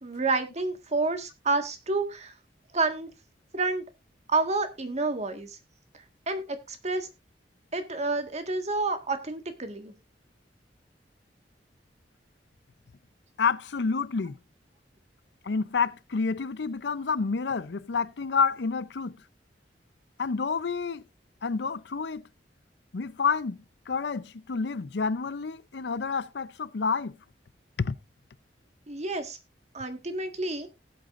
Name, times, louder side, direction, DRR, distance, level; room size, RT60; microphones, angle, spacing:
voice 1, 0.0-2.3 2.7-3.1 3.5-3.8 4.3-5.6 6.3-7.1 7.7-9.9 28.9-29.4 29.7-30.7, right 3 dB, 40° right, 1.7 m, -29 dB
voice 2, 13.4-14.4 15.4-19.2 20.2-21.0 21.4-22.3 22.9-23.6 23.9-27.2 27.8-28.0, left 5 dB, 70° left, 0.6 m, -29 dB
18.0 x 8.0 x 2.5 m
head